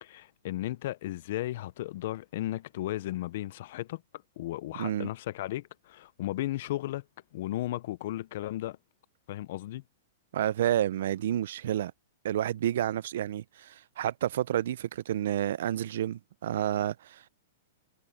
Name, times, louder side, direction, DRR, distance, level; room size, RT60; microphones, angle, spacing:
voice 1, 0.0-4.0 4.4-7.0 7.3-8.8 9.3-9.8, left 15 dB, 50° left, 0.5 m, -35 dB
voice 2, 4.7-5.1 10.3-11.9 12.2-17.3, right 11 dB, 60° right, 0.5 m, -30 dB
supercardioid pair, 170°, 0 cm